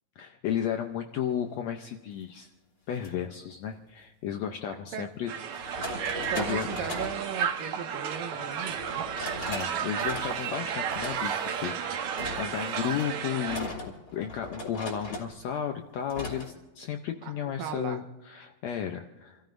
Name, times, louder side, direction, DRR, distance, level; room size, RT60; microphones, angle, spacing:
voice 1, 0.2-2.5 2.9-5.9 6.3-6.9 9.5-19.4, left 9 dB, 75° left, 4 dB, 1.6 m, -34 dB
sound 1, 2.9-3.1 4.7-4.8 5.5-7.2 8.7-9.7 10.0-10.5 10.9-11.7 12.2-15.4 16.1-16.5, left 1 dB, 25° left, 2.8 m, -39 dB
voice 2, 4.7-5.1 6.3-9.1 17.2-17.3 17.6-18.0, right 8 dB, 85° right, 7 dB, 2.7 m, -37 dB
Crowd, 5.3-13.6, right 7 dB, 65° right, 2.2 m, -33 dB
29.0 x 14.5 x 2.6 m, 1.1 s
omnidirectional pair, 3.9 m